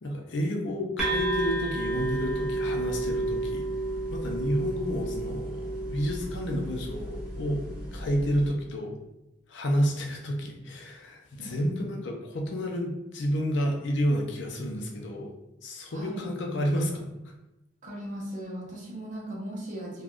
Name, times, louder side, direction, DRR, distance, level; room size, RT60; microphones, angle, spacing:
voice 1, 0.0-3.6 4.1-7.6 7.9-8.9 9.5-15.3 15.6-17.1, equal, 70° left, 1 dB, 0.5 m, -30 dB
sound 1, 1.0-8.5, right 2 dB, 5° right, 0.8 m, -31 dB
voice 2, 11.4-11.7 15.9-16.2 17.8-20.0, right 1 dB, 40° right, -2 dB, 0.7 m, -38 dB
3.4 x 2.2 x 2.4 m, 0.94 s
head